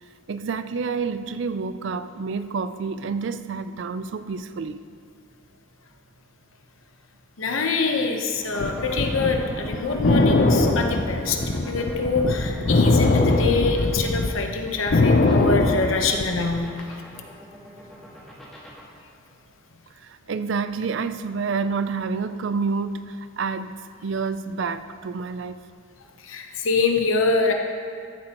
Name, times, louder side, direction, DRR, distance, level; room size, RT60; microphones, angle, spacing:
voice 1, 0.3-4.8 20.0-25.6, right 5 dB, 65° right, 0.4 m, -28 dB
voice 2, 7.4-11.4 11.6-16.7 26.2-27.5, left 4 dB, 80° left, 1.0 m, -25 dB
sound 1, 8.4-18.8, equal, ahead, 1.7 m, -42 dB
sound 2, 8.6-14.3 14.7-16.6, left 2 dB, 50° left, 0.6 m, -20 dB
14.0 x 8.5 x 3.0 m
head